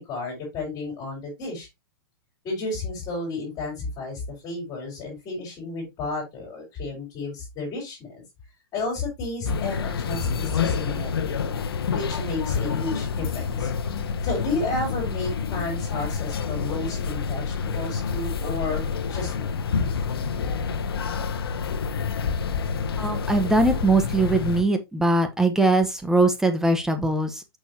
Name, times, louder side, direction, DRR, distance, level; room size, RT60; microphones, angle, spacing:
voice 1, 0.0-1.7 2.4-8.2 8.7-13.7 14.2-19.5, left 3 dB, 30° left, 4.6 m, -32 dB
sound 1, 9.5-24.6, left 5 dB, 85° left, 1.0 m, -28 dB
voice 2, 23.0-27.3, right 2 dB, 5° right, 1.1 m, -21 dB
6.1 x 6.0 x 2.8 m
hypercardioid pair, 130°, 12 cm